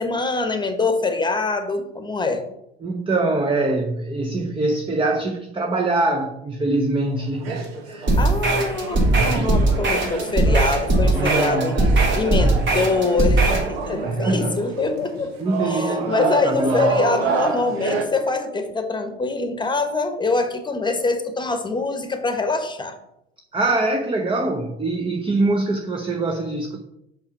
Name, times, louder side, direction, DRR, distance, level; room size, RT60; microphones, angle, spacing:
voice 1, 0.0-2.4 8.2-9.0 9.2-11.8 12.1-15.3 15.6-23.0, left 3 dB, 15° left, 7 dB, 1.2 m, -24 dB
voice 2, 2.8-8.6 9.1-9.6 11.1-11.8 12.4-12.6 14.0-14.6 15.4-16.9 23.5-26.8, right 2 dB, 15° right, 4 dB, 0.8 m, -24 dB
sound 1, 7.1-18.1, right 4 dB, 80° right, 1.3 m, -28 dB
sound 2, 8.1-13.7, right 2 dB, 40° right, 2.5 m, -19 dB
5.7 x 5.6 x 5.7 m, 0.83 s
hypercardioid pair, 75°, 31 cm